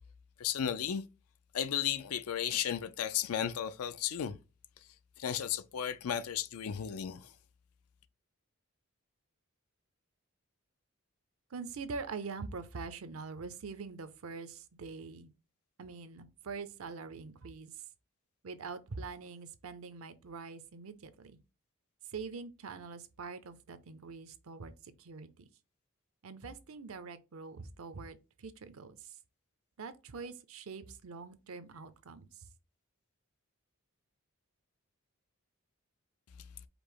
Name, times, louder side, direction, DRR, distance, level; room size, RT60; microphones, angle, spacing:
voice 1, 0.4-1.0 1.5-4.4 5.2-7.3, left 9 dB, 85° left, 0.4 m, -34 dB
voice 2, 11.5-15.3 15.8-17.7 18.4-21.4 22.1-25.5 26.2-29.1 29.8-32.3, right 4 dB, 75° right, 0.6 m, -44 dB
5.1 x 2.0 x 4.6 m
head